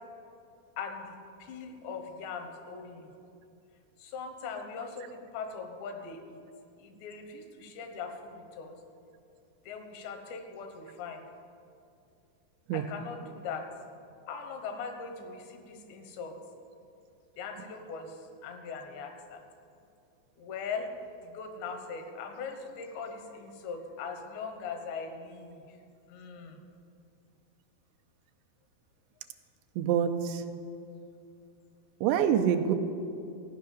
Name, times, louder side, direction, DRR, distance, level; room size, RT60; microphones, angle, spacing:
voice 1, 0.8-3.1 4.0-6.4 6.8-8.8 9.7-11.2 12.7-13.7 14.3-16.4 17.4-19.4 20.4-20.9 21.2-25.6 26.1-26.6, left 5 dB, 80° left, 5 dB, 3.3 m, -40 dB
voice 2, 29.8-30.4 32.0-32.7, right 9 dB, 85° right, 7 dB, 2.8 m, -26 dB
15.0 x 5.7 x 9.3 m, 2.5 s
omnidirectional pair, 5.1 m